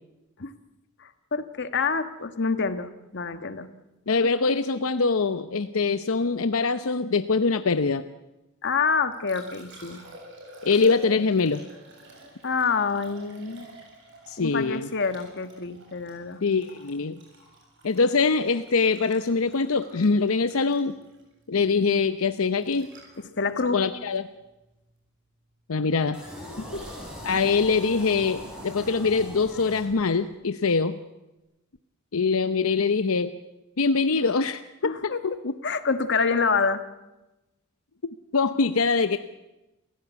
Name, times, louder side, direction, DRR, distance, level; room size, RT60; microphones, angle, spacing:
voice 1, 1.0-3.7 8.6-10.0 12.4-13.7 14.4-16.4 23.4-23.8 26.6-26.8 34.8-35.2 35.6-36.8, left 5 dB, 55° left, 10 dB, 1.5 m, -27 dB
voice 2, 4.1-8.0 10.6-11.6 14.3-14.9 16.4-17.2 17.8-20.9 21.5-22.9 23.7-24.2 25.7-26.2 27.2-31.0 32.1-33.3 33.8-35.3 38.3-39.2, left 4 dB, 85° left, 10 dB, 0.8 m, -23 dB
Liquid, 8.9-25.0 27.8-27.9, right 1 dB, 60° right, 7.6 m, -48 dB
sound 1, 26.1-30.3, equal, 5° right, 7.1 m, -40 dB
28.0 x 16.0 x 8.2 m, 1.0 s
head